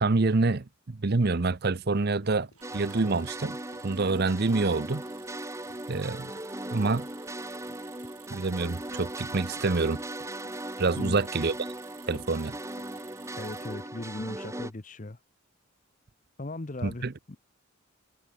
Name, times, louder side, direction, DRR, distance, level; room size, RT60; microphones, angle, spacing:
voice 1, 0.0-2.5 2.7-3.6 3.8-5.0 5.9-6.3 6.7-7.1 8.3-10.0 10.8-11.5 12.1-12.6 16.8-17.1, right 3 dB, 45° right, 0.7 m, -26 dB
sound 1, 1.9-2.2 2.5-2.8 3.1-3.4 3.7-3.9 4.4-4.6 5.0-5.3 5.7-5.9 6.4-6.7 7.0-7.2 7.7-7.9 8.3-8.6 8.9-9.2 9.6-9.8 10.2-10.5 10.9-11.1 11.5-11.8 12.1-12.4 12.8-13.0 13.4-13.6, left 2 dB, 85° left, 3.3 m, -56 dB
sound 2, 2.5-13.9, right 10 dB, 90° right, 7.9 m, -54 dB
sound 3, 2.6-14.7, right 1 dB, 15° right, 2.8 m, -38 dB
voice 2, 13.4-15.2 16.4-17.1, left 2 dB, 35° left, 0.8 m, -37 dB
head